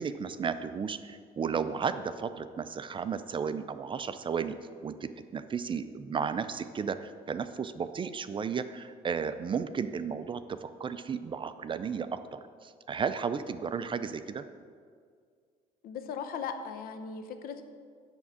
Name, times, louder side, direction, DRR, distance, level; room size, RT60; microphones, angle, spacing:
voice 1, 0.0-4.6 4.8-14.4, right 6 dB, 30° right, 11 dB, 0.4 m, -34 dB
voice 2, 15.8-17.6, left 6 dB, 70° left, 8 dB, 0.8 m, -38 dB
10.5 x 3.6 x 7.3 m, 2.1 s
cardioid pair, 90°, 16 cm